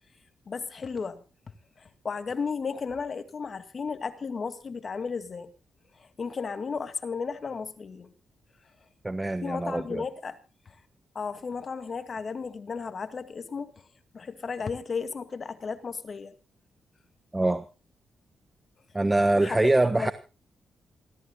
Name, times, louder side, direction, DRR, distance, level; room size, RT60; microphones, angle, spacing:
voice 1, 0.5-1.2 1.8-5.5 6.0-8.1 9.4-10.4 10.7-10.8 11.1-13.7 14.1-16.3 19.4-19.6 19.9-20.1, left 5 dB, 50° left, 2.1 m, -34 dB
voice 2, 9.0-10.0 17.3-17.6 18.9-20.1, right 2 dB, 20° right, 1.2 m, -24 dB
28.0 x 14.5 x 2.3 m
cardioid pair, 70°, 0 cm